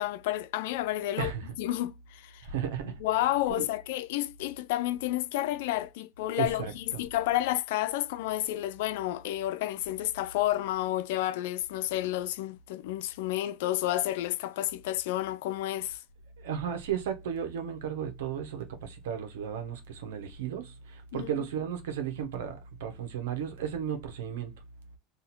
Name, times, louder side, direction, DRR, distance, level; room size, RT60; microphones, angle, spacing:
voice 1, 0.0-1.3 1.6-2.4 2.8-16.0 21.1-21.3, left 14 dB, 80° left, 0.4 m, -30 dB
voice 2, 1.2-1.5 2.4-3.0 3.5-3.6 6.4-7.0 16.4-24.5, right 8 dB, 90° right, 1.1 m, -34 dB
2.7 x 2.6 x 4.1 m
supercardioid pair, 115°, 0 cm